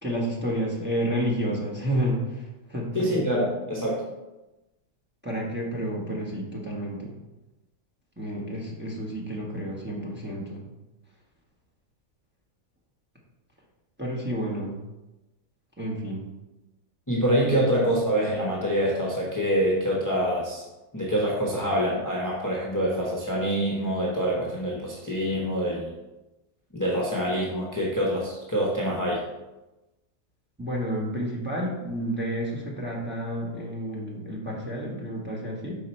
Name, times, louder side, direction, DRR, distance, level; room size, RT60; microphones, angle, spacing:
voice 1, 0.0-3.1 5.2-7.1 8.2-10.6 14.0-14.8 15.8-16.3 17.5-17.6 30.6-35.8, equal, 10° right, -3 dB, 1.2 m, -30 dB
voice 2, 2.9-4.0 17.1-20.6 20.9-25.9 26.7-29.2, equal, 15° left, -5 dB, 1.0 m, -25 dB
5.9 x 4.7 x 4.4 m, 1.0 s
omnidirectional pair, 1.5 m